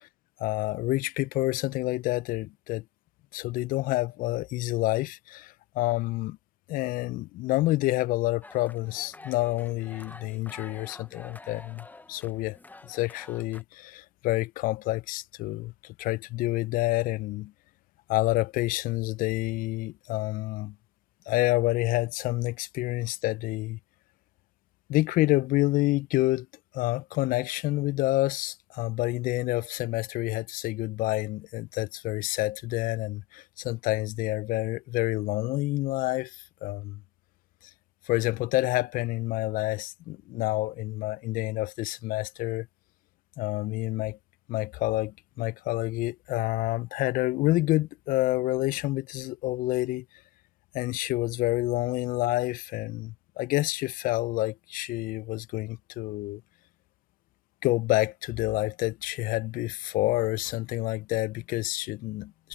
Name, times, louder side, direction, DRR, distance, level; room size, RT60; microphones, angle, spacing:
voice 1, 0.4-2.8 3.3-6.4 6.7-12.6 12.9-17.5 18.1-20.7 21.3-23.8 24.9-26.5 26.7-37.0 38.1-42.7 43.4-44.2 44.5-50.0 50.7-56.4 57.6-62.5, left 18 dB, 45° left, 1.1 m, -28 dB
sound 1, 8.4-13.6, left 2 dB, 10° left, 1.5 m, -49 dB
hypercardioid pair, 90°, 20 cm